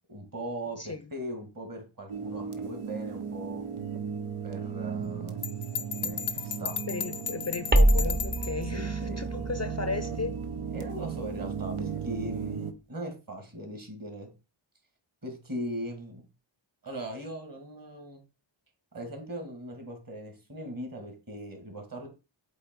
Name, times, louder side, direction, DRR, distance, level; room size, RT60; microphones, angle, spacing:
voice 1, 0.1-3.6 4.4-5.4 5.8-6.8 8.7-9.4 10.7-14.3 15.2-16.2 16.8-18.2 18.9-22.1, right 1 dB, 40° right, 2.2 m, -39 dB
sound 1, 2.1-12.7, right 7 dB, 85° right, 0.9 m, -36 dB
Bell, 5.4-8.6, left 7 dB, 75° left, 0.6 m, -35 dB
voice 2, 6.9-10.4, left 4 dB, 35° left, 0.5 m, -35 dB
sound 2, 7.7-12.6, right 1 dB, 20° right, 0.8 m, -28 dB
7.9 x 3.0 x 4.6 m
wide cardioid pair, 55°, 50 cm